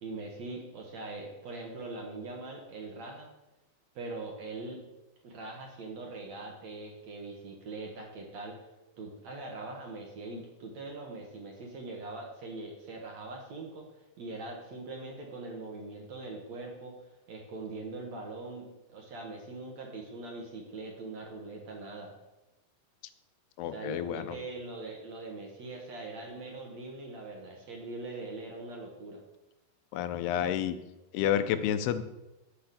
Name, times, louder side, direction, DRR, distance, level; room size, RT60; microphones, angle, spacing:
voice 1, 0.0-3.3 4.0-4.8 5.2-8.6 9.0-16.9 17.3-22.1 23.7-29.2, right 3 dB, 55° right, 0 dB, 2.0 m, -42 dB
voice 2, 23.6-24.3 29.9-30.8 31.1-32.0, left 10 dB, 80° left, 11 dB, 2.6 m, -29 dB
8.7 x 8.0 x 6.8 m, 1.0 s
omnidirectional pair, 4.8 m